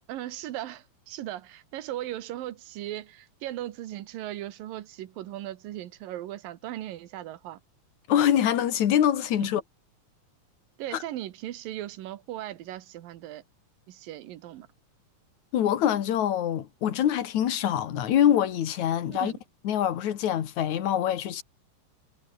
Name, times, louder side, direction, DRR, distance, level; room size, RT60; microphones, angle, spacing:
voice 1, 0.1-7.6 9.4-9.5 10.8-13.4 13.9-14.7 19.2-19.4, right 13 dB, 85° right, 3.0 m, -38 dB
voice 2, 8.1-9.6 10.9-11.0 15.5-19.3 19.6-21.4, left 10 dB, 60° left, 3.0 m, -24 dB
omnidirectional pair, 3.9 m